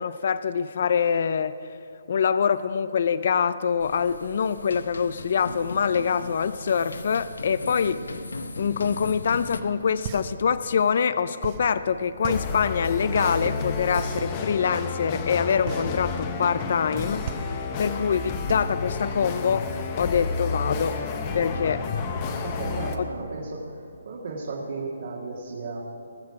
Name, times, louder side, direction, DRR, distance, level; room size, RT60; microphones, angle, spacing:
voice 1, 0.0-1.5 2.1-8.0 8.6-17.2 17.8-19.7 20.0-21.0 21.3-21.8, left 6 dB, 50° left, 14 dB, 0.4 m, -24 dB
sound 1, 3.8-9.6, left 2 dB, 90° left, 0.8 m, -37 dB
sound 2, 10.0-19.9, right 7 dB, 30° right, 0.8 m, -37 dB
sound 3, 12.3-23.0, left 4 dB, 25° left, 0.8 m, -31 dB
voice 2, 22.4-25.8, right 3 dB, 55° right, -3 dB, 1.8 m, -35 dB
19.5 x 6.7 x 4.8 m, 2.6 s
hypercardioid pair, 160°, 0 cm